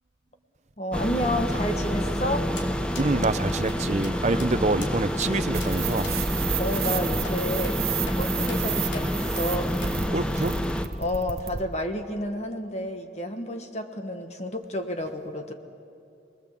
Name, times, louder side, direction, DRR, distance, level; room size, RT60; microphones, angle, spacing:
voice 1, 0.8-2.5 6.5-7.9 8.1-9.7 11.0-15.5, left 1 dB, 35° left, 5 dB, 1.4 m, -30 dB
sound 1, 0.9-10.9, equal, 5° left, 0.8 m, -28 dB
sound 2, 2.6-2.7 2.9-3.1 3.7-3.8 4.0-4.1 4.4-4.5 4.8-4.9 5.2-5.3 5.6-5.7 6.0-6.2 6.8-7.0 7.2-7.4 7.6-7.8 8.1-8.2 8.5-8.6 8.9-9.1 9.4-9.5 9.8-9.9, left 3 dB, 80° left, 3.3 m, -40 dB
voice 2, 3.0-6.1 10.1-10.6, right 2 dB, 40° right, 12 dB, 0.7 m, -26 dB
sound 3, 5.5-11.6, right 7 dB, 55° right, 1.1 m, -32 dB
28.5 x 20.5 x 7.5 m, 2.5 s
head